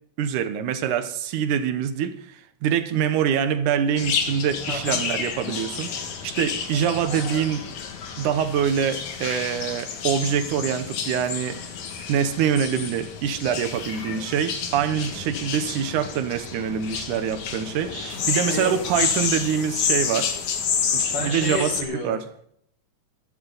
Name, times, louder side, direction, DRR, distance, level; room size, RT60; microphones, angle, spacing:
voice 1, 0.2-7.7 8.2-11.6 12.1-18.0 18.3-20.3 20.9-22.2, right 8 dB, 85° right, 2.5 m, -25 dB
sound 1, 3.9-21.8, left 6 dB, 75° left, 2.9 m, -30 dB
voice 2, 4.7-5.0 17.9-18.2 18.5-18.8 21.1-22.5, left 2 dB, 50° left, 2.9 m, -31 dB
14.5 x 13.5 x 4.0 m
omnidirectional pair, 3.4 m